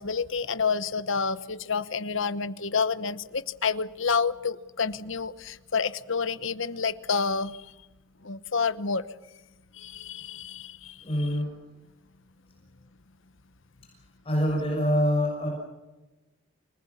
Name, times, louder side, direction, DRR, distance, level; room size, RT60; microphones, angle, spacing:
voice 1, 0.0-7.7 8.2-9.0 9.7-11.0, left 5 dB, 60° left, 14 dB, 1.0 m, -29 dB
voice 2, 11.0-11.5 13.8-14.0 14.2-15.5, equal, 25° left, -1 dB, 6.5 m, -25 dB
29.0 x 19.5 x 7.3 m, 1.1 s
head